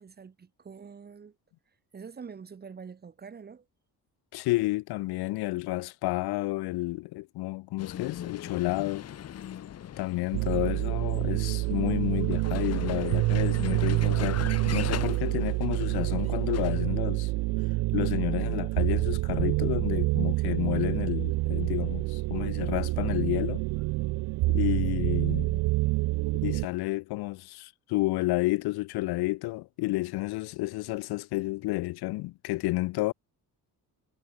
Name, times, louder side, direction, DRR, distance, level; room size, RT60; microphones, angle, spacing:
voice 1, 0.0-1.3 1.9-3.7, right 6 dB, 25° right, 2.7 m, -45 dB
voice 2, 4.3-9.1 10.0-17.3 17.9-23.6 24.5-25.6 26.3-33.1, left 20 dB, 85° left, 0.6 m, -31 dB
Vehicle, 7.8-16.9, left 10 dB, 40° left, 1.5 m, -41 dB
sound 1, 10.3-26.7, right 20 dB, 75° right, 0.6 m, -27 dB
cardioid pair, 170°, 37 cm